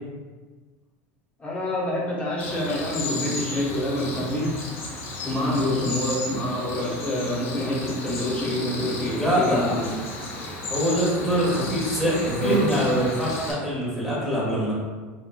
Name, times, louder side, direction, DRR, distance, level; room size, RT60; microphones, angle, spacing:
voice 1, 1.4-4.6 5.2-10.5, left 1 dB, 15° left, -6 dB, 0.9 m, -27 dB
Cricket, 2.4-13.5, left 1 dB, 90° left, 0.8 m, -32 dB
voice 2, 9.1-9.7 10.7-14.7, equal, ahead, -8 dB, 1.3 m, -24 dB
3.2 x 3.1 x 2.2 m, 1.4 s
supercardioid pair, 115°, 7 cm